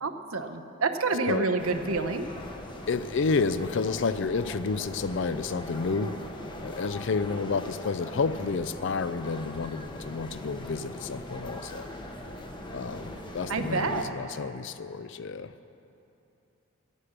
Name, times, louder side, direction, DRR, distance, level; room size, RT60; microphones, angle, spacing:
voice 1, 0.0-2.3 13.5-14.1, right 3 dB, 75° right, 8 dB, 0.8 m, -28 dB
sound 1, 1.6-14.1, left 1 dB, 20° left, 0.9 m, -41 dB
voice 2, 2.9-6.1 6.6-11.9 12.7-15.5, left 4 dB, 55° left, 13 dB, 0.4 m, -30 dB
15.0 x 9.9 x 6.0 m, 2.8 s
head